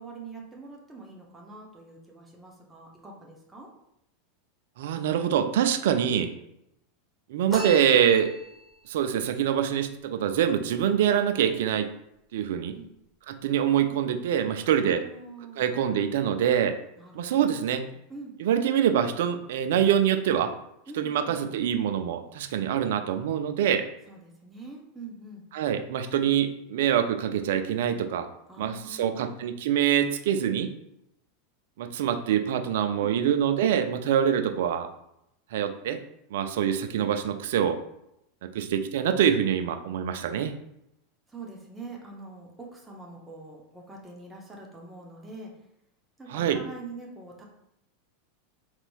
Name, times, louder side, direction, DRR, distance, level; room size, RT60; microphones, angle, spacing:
voice 1, 0.0-3.7 12.5-12.9 14.7-15.6 17.0-17.4 17.9-18.3 20.9-21.4 24.1-25.4 28.5-29.3 30.2-30.5 33.0-33.1 41.3-45.5 46.2-47.4, right 3 dB, 15° right, -1 dB, 0.8 m, -44 dB
voice 2, 4.8-6.3 7.3-8.3 8.9-11.9 12.3-12.7 13.3-15.0 15.6-16.8 17.1-17.8 18.4-20.5 21.0-23.8 25.5-28.3 28.6-30.7 31.8-34.9 35.5-36.0 36.3-37.8 38.4-40.5 46.3-46.6, right 9 dB, 65° right, 8 dB, 0.3 m, -25 dB
sound 1, 7.5-8.8, right 1 dB, 10° left, 1.5 m, -35 dB
4.0 x 3.0 x 2.3 m, 0.81 s
hypercardioid pair, 90°, 0 cm